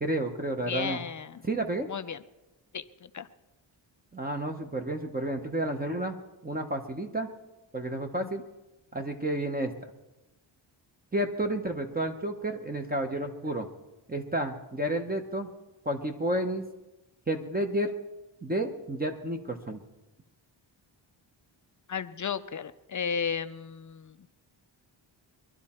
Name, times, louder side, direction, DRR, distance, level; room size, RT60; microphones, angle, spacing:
voice 1, 0.0-1.0 1.4-1.9 4.1-6.2 6.4-7.3 7.7-8.4 8.9-9.7 11.1-13.7 14.1-15.5 15.8-16.6 17.3-17.9 18.4-19.8, right 1 dB, 20° right, 4 dB, 0.9 m, -31 dB
voice 2, 0.7-1.5 1.9-2.2 2.7-3.3 21.9-24.2, left 7 dB, 40° left, 12 dB, 0.5 m, -34 dB
22.5 x 12.0 x 4.3 m, 1.0 s
wide cardioid pair, 140°, 48 cm